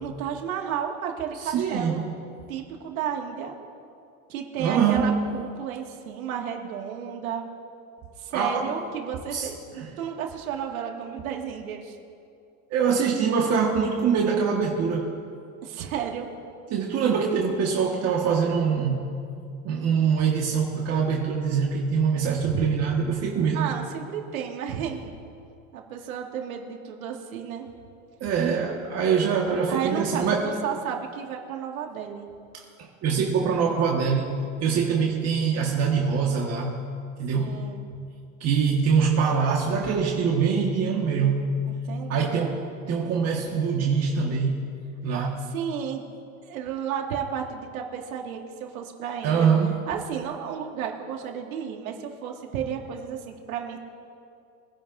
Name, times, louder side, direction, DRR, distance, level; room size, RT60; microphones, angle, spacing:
voice 1, 0.0-2.1 2.5-3.5 4.3-7.5 8.2-12.0 15.6-16.3 22.3-22.7 23.5-25.1 25.7-27.7 29.7-32.3 37.4-37.9 41.9-42.5 45.1-46.0 46.4-49.5 49.9-53.8, right 8 dB, 90° right, 1 dB, 2.1 m, -32 dB
voice 2, 1.4-2.0 4.6-5.2 8.3-8.7 9.3-9.5 9.8-9.9 12.7-15.1 16.7-19.0 19.6-23.7 28.2-30.5 32.5-34.3 34.6-36.7 37.2-37.6 38.4-41.5 42.1-44.6 45.0-45.4 49.2-49.8, right 6 dB, 35° right, -1 dB, 1.6 m, -24 dB
24.0 x 11.0 x 2.7 m, 2.4 s
supercardioid pair, 130°, 41 cm